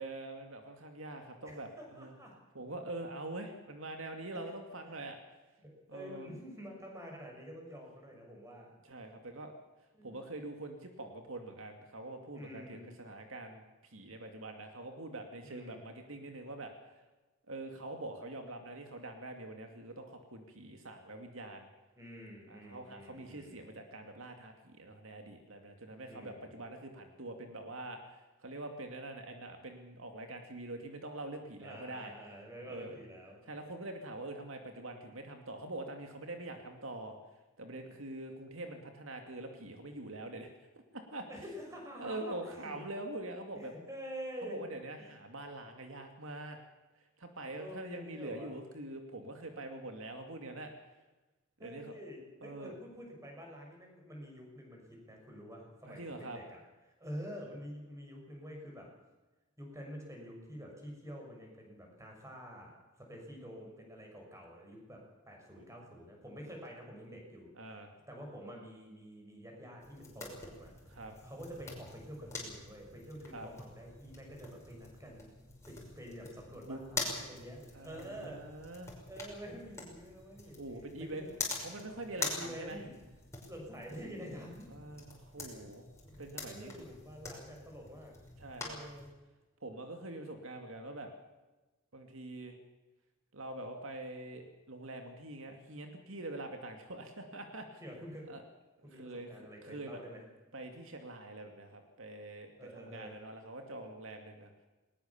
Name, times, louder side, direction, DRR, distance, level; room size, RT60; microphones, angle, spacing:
voice 1, 0.0-2.2 2.5-5.2 5.9-6.3 8.8-9.5 10.0-17.0 17.5-21.7 22.5-32.1 32.7-33.0 33.5-37.2 37.6-40.5 40.9-41.3 42.0-43.7 44.4-46.6 47.2-50.7 51.6-51.9 52.4-52.7 55.8-56.4 65.6-65.7 67.6-67.9 70.9-71.1 73.3-73.5 76.7-76.8 77.7-78.9 80.6-82.8 84.7-85.8 86.2-86.9 88.4-88.8 89.6-91.1 91.9-92.6 93.3-97.8 98.3-98.4 98.9-100.0 100.5-104.5, right 2 dB, 70° right, 5 dB, 2.4 m, -44 dB
voice 2, 1.4-2.3 4.3-4.5 4.8-4.9 5.6-8.7 10.0-10.2 12.3-12.9 15.4-15.9 22.0-23.7 26.1-26.6 31.6-33.4 41.3-42.4 42.6-42.7 43.5-44.6 45.0-45.1 47.6-48.5 51.6-56.6 57.0-58.9 59.6-70.7 71.2-75.3 75.7-78.4 79.0-80.6 81.0-81.4 82.2-82.9 83.4-84.7 85.4-85.7 86.1-88.1 88.6-89.1 97.8-98.3 98.8-100.2 102.6-103.2, equal, 15° right, 1 dB, 6.2 m, -48 dB
sound 1, 69.8-89.1, left 3 dB, 15° left, 5.7 m, -45 dB
20.5 x 20.5 x 7.2 m, 1.1 s
head